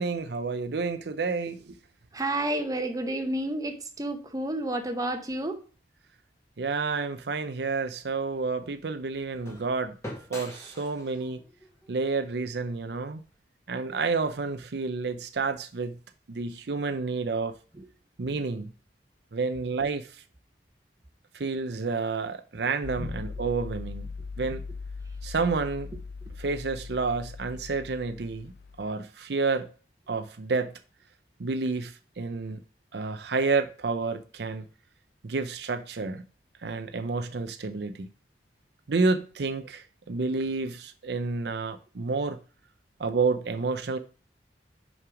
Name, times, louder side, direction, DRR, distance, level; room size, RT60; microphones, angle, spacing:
voice 1, 0.0-1.8 6.6-10.0 10.3-11.4 11.9-13.2 13.7-15.9 16.3-17.5 18.2-18.7 19.3-20.1 21.3-24.1 24.4-24.6 25.2-25.9 26.4-28.5 28.8-29.7 30.1-30.7 31.4-32.6 32.9-34.7 35.2-36.2 36.6-38.1 38.9-42.4 43.0-44.0, right 4 dB, 65° right, 0.6 m, -29 dB
voice 2, 2.1-5.6 17.7-17.9 23.0-23.1 26.2-26.3, right 1 dB, 20° right, 0.9 m, -30 dB
sound 1, 7.2-13.4, left 1 dB, 15° left, 1.7 m, -46 dB
sound 2, 22.8-28.9, left 4 dB, 70° left, 0.5 m, -40 dB
5.7 x 5.5 x 4.9 m
head